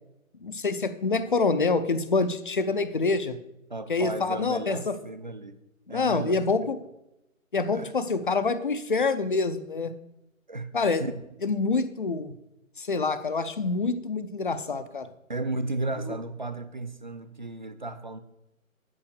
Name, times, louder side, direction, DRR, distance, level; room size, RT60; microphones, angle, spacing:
voice 1, 0.4-3.4 3.9-4.9 5.9-6.8 7.5-9.9 10.7-11.0 11.4-12.3 12.8-15.1, left 4 dB, 40° left, 11 dB, 0.5 m, -26 dB
voice 2, 3.7-5.6 5.9-6.4 7.7-7.9 10.5-10.7 11.0-11.1 15.3-18.2, right 2 dB, 35° right, 11 dB, 0.4 m, -34 dB
8.7 x 5.6 x 6.6 m, 0.88 s
figure-of-eight pair, 155°, 42 cm